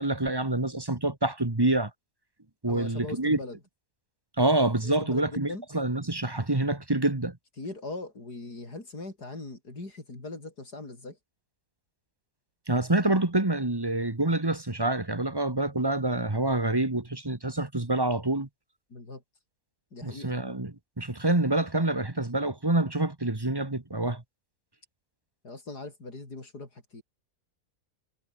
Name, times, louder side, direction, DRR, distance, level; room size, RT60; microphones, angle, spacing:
voice 1, 0.0-1.9 2.6-3.4 4.4-7.4 12.7-18.5 20.0-24.2, right 2 dB, 15° right, 1.6 m, -27 dB
voice 2, 2.7-3.6 4.8-5.7 7.6-11.2 18.9-19.2 19.9-20.4 25.4-27.0, left 2 dB, 80° left, 6.2 m, -40 dB
omnidirectional pair, 1.7 m